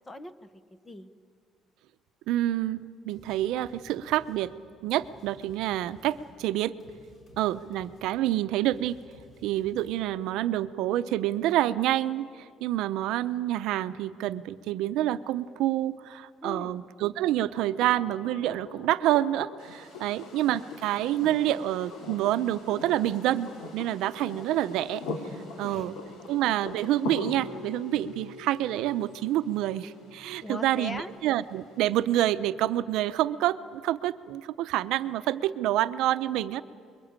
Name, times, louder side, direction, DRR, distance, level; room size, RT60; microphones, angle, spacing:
voice 1, 0.1-1.1 16.4-16.8 20.0-20.4 25.6-25.9 30.4-31.1, left 1 dB, 15° left, 12 dB, 0.8 m, -40 dB
voice 2, 2.3-4.5 4.8-6.7 7.4-9.0 9.4-25.0 25.6-25.9 26.3-36.6, right 13 dB, 65° right, 12 dB, 0.7 m, -28 dB
sound 1, 3.1-10.3, left 1 dB, 30° left, 5.6 m, -56 dB
sound 2, 17.8-31.8 33.5-33.6, left 3 dB, 85° left, 2.9 m, -42 dB
sound 3, 19.6-32.3, left 2 dB, 50° left, 5.4 m, -56 dB
29.0 x 22.5 x 8.9 m, 2.1 s
cardioid pair, 180°, 0 cm